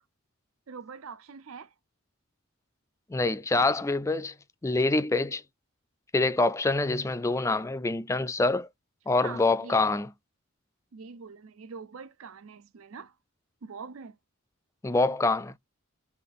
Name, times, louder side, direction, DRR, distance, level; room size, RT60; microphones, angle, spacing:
voice 1, 0.7-1.7 9.2-9.9 10.9-13.1 13.6-14.2, right 5 dB, 75° right, 0.5 m, -43 dB
voice 2, 3.1-4.3 4.6-5.4 6.1-8.7 9.1-10.1 14.8-15.5, left 3 dB, 15° left, 0.3 m, -25 dB
3.6 x 2.3 x 3.4 m
head